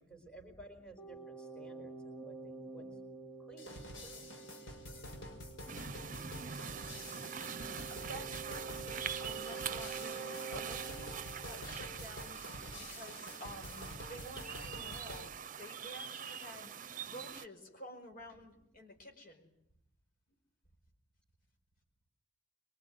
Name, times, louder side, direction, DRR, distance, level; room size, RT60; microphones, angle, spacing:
voice 1, 0.0-2.9 3.4-4.6 4.9-5.2, right 2 dB, 5° left, 5 dB, 4.7 m, -56 dB
sound 1, 1.0-12.6, right 5 dB, 20° left, 3.2 m, -49 dB
sound 2, 3.6-15.3, left 1 dB, 75° left, 5.7 m, -48 dB
sound 3, 5.7-17.5, right 7 dB, 45° right, 1.0 m, -44 dB
voice 2, 7.4-11.2 11.4-12.4 12.8-15.3 15.6-16.7 17.0-19.5, equal, 45° left, 3 dB, 5.0 m, -51 dB
25.0 x 24.0 x 9.5 m, 0.77 s
head